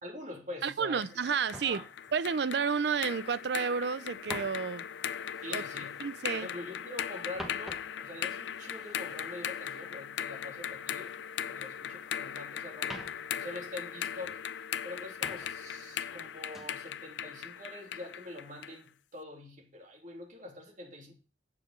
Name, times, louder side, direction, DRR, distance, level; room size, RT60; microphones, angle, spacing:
voice 1, 0.0-1.1 1.6-1.8 5.4-6.0 6.3-11.1 11.4-13.0 13.3-14.4 14.8-21.1, left 1 dB, 45° right, 2.5 m, -45 dB
voice 2, 0.6-1.8 2.1-4.8 5.5-5.6 6.0-6.5, right 6 dB, 65° right, 0.5 m, -31 dB
sound 1, 1.0-18.8, left 9 dB, 90° left, 0.4 m, -39 dB
sound 2, 1.5-3.5 3.8-6.6 7.0-11.2 11.5-12.4 12.7-14.5 14.9-15.8 16.1-16.8 17.3-17.6, equal, ahead, 1.4 m, -50 dB
8.4 x 4.9 x 6.4 m
head